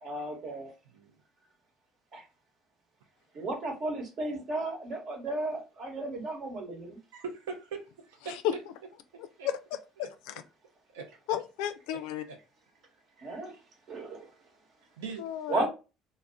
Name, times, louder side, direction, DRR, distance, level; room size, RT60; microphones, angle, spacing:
voice 1, 0.0-0.7 2.1-2.2 3.3-7.0 13.2-13.5 13.9-14.3 15.5-15.7, right 2 dB, 55° right, 1.1 m, -34 dB
voice 2, 0.9-1.2 7.1-8.6 9.4-9.5 10.0-10.1 10.9-11.4 12.3-12.4 15.0-15.7, right 5 dB, 90° right, 0.5 m, -41 dB
voice 3, 9.4-9.8 11.3-12.2 15.2-15.7, left 11 dB, 80° left, 0.3 m, -32 dB
2.3 x 2.0 x 3.4 m
hypercardioid pair, 70°, 0 cm